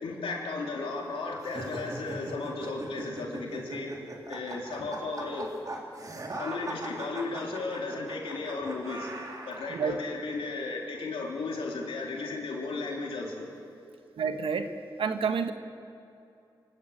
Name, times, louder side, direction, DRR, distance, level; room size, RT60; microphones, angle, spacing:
voice 1, 0.0-3.9 4.3-5.5 6.4-9.1 9.5-13.5, left 3 dB, 85° left, -1 dB, 3.5 m, -35 dB
sound 1, 1.4-9.9, right 1 dB, 40° right, 3.5 m, -40 dB
voice 2, 14.2-14.7 15.0-15.5, right 6 dB, 80° right, 8 dB, 1.3 m, -29 dB
25.0 x 12.0 x 8.6 m, 2.7 s
cardioid pair, 50°, 9 cm